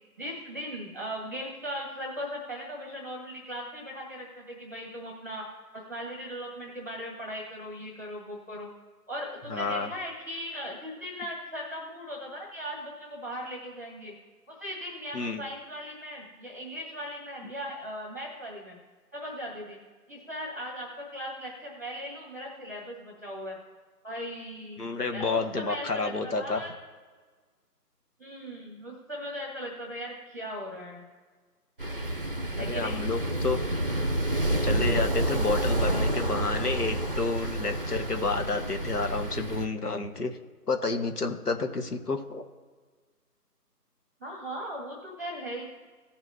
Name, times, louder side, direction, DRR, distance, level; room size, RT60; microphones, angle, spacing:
voice 1, 0.2-5.5 5.7-8.7 9.1-14.1 14.5-18.8 19.1-19.8 20.1-23.6 24.0-26.7 28.2-31.0 32.6-33.0 35.9-36.0 44.2-45.6, equal, 10° right, -1 dB, 1.1 m, -38 dB
voice 2, 9.5-9.9 15.1-15.4 24.8-26.6 32.6-33.6 34.6-40.4 40.7-42.5, left 3 dB, 70° left, 5 dB, 1.5 m, -30 dB
sound 1, 31.8-39.7, right 1 dB, 35° right, 0.7 m, -29 dB
17.5 x 6.0 x 2.7 m, 1.5 s
figure-of-eight pair, 165°, 48 cm